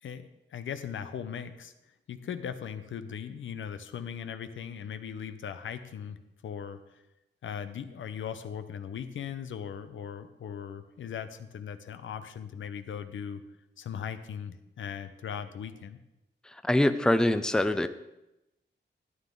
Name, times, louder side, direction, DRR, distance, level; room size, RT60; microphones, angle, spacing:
voice 1, 0.0-1.7 2.1-7.0 7.4-13.4 13.8-16.0, left 8 dB, 90° left, 10 dB, 0.7 m, -39 dB
voice 2, 16.6-17.9, left 1 dB, 5° left, 11 dB, 0.5 m, -24 dB
12.5 x 9.4 x 3.8 m, 0.93 s
wide cardioid pair, 90°, 19 cm